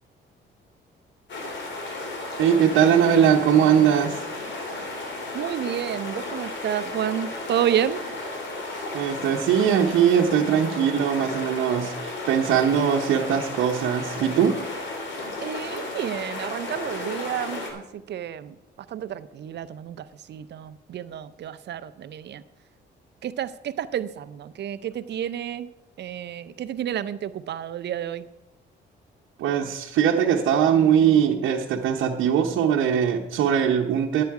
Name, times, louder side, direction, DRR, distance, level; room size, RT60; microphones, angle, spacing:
sound 1, 1.3-17.7, left 2 dB, 65° left, 2.8 m, -34 dB
voice 1, 2.4-4.2 8.9-14.6 29.4-34.2, right 8 dB, 85° right, -1 dB, 0.9 m, -21 dB
voice 2, 5.3-8.1 15.4-18.5 18.9-22.4 23.2-25.7 26.0-28.3, right 10 dB, 60° right, 13 dB, 0.5 m, -30 dB
11.5 x 8.4 x 4.7 m, 0.94 s
cardioid pair, 90°, 20 cm